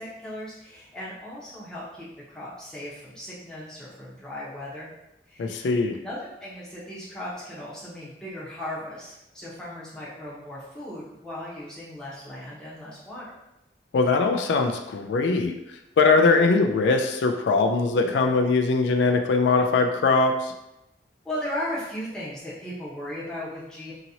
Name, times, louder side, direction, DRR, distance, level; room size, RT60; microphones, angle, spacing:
voice 1, 0.0-4.9 5.3-5.6 6.0-13.3 21.2-23.9, left 1 dB, 5° left, -8 dB, 0.8 m, -37 dB
voice 2, 5.4-6.0 13.9-15.5 16.0-20.5, left 3 dB, 90° left, 4 dB, 0.3 m, -21 dB
2.8 x 2.8 x 2.7 m, 0.90 s
head